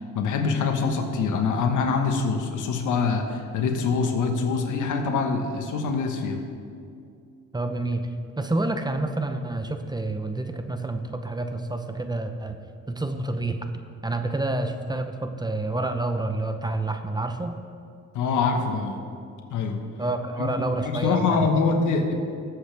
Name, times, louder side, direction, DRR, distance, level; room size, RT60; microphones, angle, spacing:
voice 1, 0.1-6.4 18.1-19.0 19.5-19.9 20.4-22.1, left 4 dB, 80° left, 4 dB, 1.4 m, -24 dB
voice 2, 7.5-8.1 8.4-12.6 12.9-13.6 14.0-17.5 20.0-21.5, right 2 dB, 15° right, 7 dB, 0.8 m, -28 dB
19.0 x 7.9 x 3.4 m, 2.4 s
cardioid pair, 90°, 30 cm